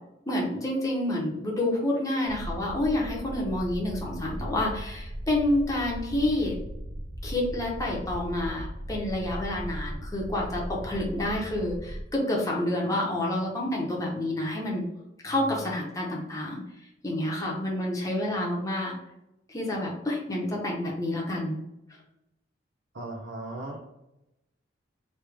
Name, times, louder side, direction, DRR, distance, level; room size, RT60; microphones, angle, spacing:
voice 1, 0.3-6.5 7.2-14.8 15.2-16.6 17.0-19.0 19.5-21.6, left 1 dB, 20° left, -2 dB, 0.8 m, -28 dB
sound 1, 2.3-12.0, equal, 35° right, 0.5 m, -38 dB
voice 2, 4.0-4.6 22.9-23.8, right 2 dB, 70° right, -3 dB, 0.7 m, -38 dB
3.3 x 2.9 x 3.4 m, 0.91 s
head